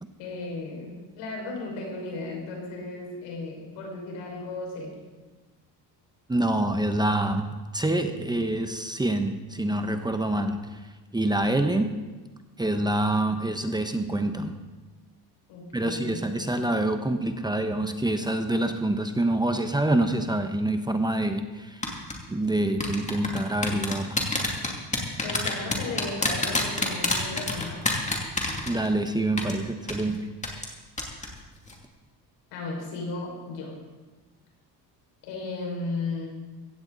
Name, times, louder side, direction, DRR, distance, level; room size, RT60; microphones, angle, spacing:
voice 1, 0.2-4.9 15.5-16.2 16.5-16.7 25.2-28.1 32.5-33.7 35.2-36.3, left 3 dB, 90° left, -1 dB, 5.7 m, -35 dB
voice 2, 6.3-10.8 11.1-11.9 12.6-14.6 15.7-21.9 22.3-24.2 28.7-30.3, right 1 dB, 10° right, 7 dB, 1.0 m, -26 dB
sound 1, 21.8-22.1 22.8-29.1 29.4-29.5 29.9-30.0 30.4-30.7 31.0-31.3 31.6-31.7, left 2 dB, 15° left, 2.6 m, -26 dB
16.5 x 15.0 x 4.1 m, 1.2 s
cardioid pair, 120°, 42 cm